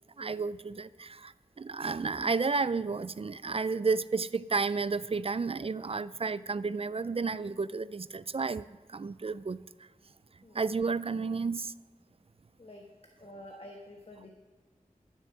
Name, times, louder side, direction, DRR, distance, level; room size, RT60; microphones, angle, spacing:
voice 1, 0.2-9.6 10.5-11.7, right 4 dB, 40° right, 17 dB, 0.4 m, -32 dB
voice 2, 13.2-14.3, left 1 dB, 40° left, 2 dB, 1.3 m, -48 dB
12.5 x 7.8 x 5.7 m, 1.4 s
wide cardioid pair, 45°, 15 cm